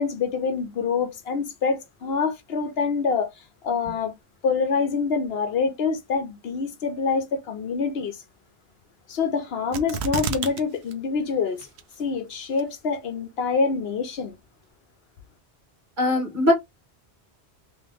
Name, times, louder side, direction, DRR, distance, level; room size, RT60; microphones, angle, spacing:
voice 1, 0.0-3.3 3.6-4.1 4.4-8.2 9.1-11.7 12.0-14.3, left 5 dB, 65° left, 0.9 m, -26 dB
sound 1, 9.7-10.6 10.9-11.0 11.6-12.0 12.6-12.7, right 7 dB, 75° right, 0.9 m, -29 dB
voice 2, 16.0-16.5, left 1 dB, 45° right, 1.5 m, -20 dB
3.0 x 2.9 x 3.4 m
omnidirectional pair, 1.1 m